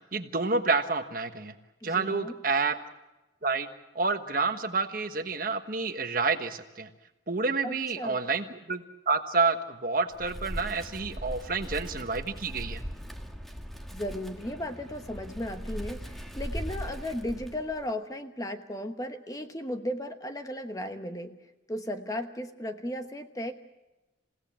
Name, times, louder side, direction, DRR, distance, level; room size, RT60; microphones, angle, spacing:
voice 1, 0.0-1.5 1.8-2.8 3.4-3.7 3.9-6.9 7.3-12.8, right 4 dB, 45° right, 8 dB, 1.3 m, -29 dB
voice 2, 1.8-2.3 7.6-8.2 13.9-21.4 21.7-23.5, left 1 dB, 20° left, 7 dB, 1.1 m, -35 dB
Wind, 10.1-17.9, equal, ahead, 1.5 m, -39 dB
28.5 x 17.0 x 7.5 m, 1.0 s
head